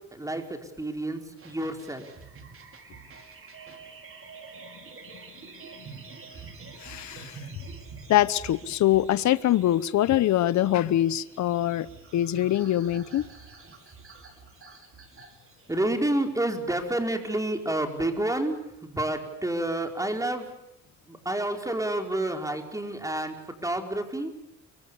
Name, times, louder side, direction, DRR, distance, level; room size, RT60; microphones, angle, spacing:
voice 1, 0.1-2.1 15.7-20.5 21.1-23.3 23.6-24.3, right 1 dB, 10° right, 4 dB, 4.8 m, -29 dB
sound 1, 1.4-16.1, right 4 dB, 45° right, 5.3 m, -47 dB
voice 2, 6.8-7.4 8.1-11.9 12.1-13.2, left 13 dB, 65° left, 16 dB, 0.9 m, -23 dB
28.5 x 24.0 x 7.2 m, 0.84 s
cardioid pair, 90°, 30 cm